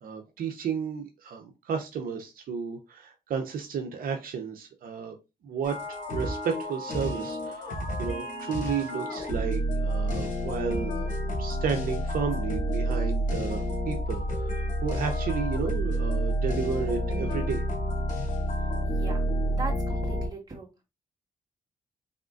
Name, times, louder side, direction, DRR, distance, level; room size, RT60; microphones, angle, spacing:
voice 1, 0.0-5.1 5.4-11.1 11.4-17.6, right 6 dB, 75° right, 4 dB, 0.7 m, -33 dB
sound 1, 5.6-20.3, equal, 65° left, 2.1 m, -29 dB
voice 2, 18.8-19.2 19.6-20.7, right 3 dB, 25° right, -2 dB, 2.1 m, -38 dB
4.2 x 3.6 x 2.5 m, 0.26 s
cardioid pair, 80°, 15 cm